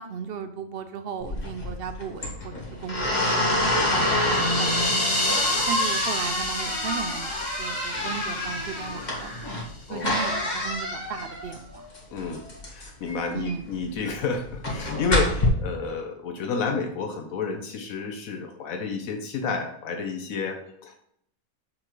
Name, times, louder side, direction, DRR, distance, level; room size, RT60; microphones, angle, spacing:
voice 1, 0.0-5.2 5.7-9.3 9.9-11.9 13.3-13.7, right 6 dB, 65° right, 9 dB, 0.6 m, -36 dB
sound 1, 1.2-15.5, left 1 dB, 30° left, 1.5 m, -28 dB
sound 2, 3.3-9.4, left 1 dB, 10° left, 1.5 m, -29 dB
voice 2, 12.1-21.0, left 4 dB, 80° left, 4 dB, 1.1 m, -30 dB
6.8 x 5.6 x 3.1 m, 0.70 s
omnidirectional pair, 1.5 m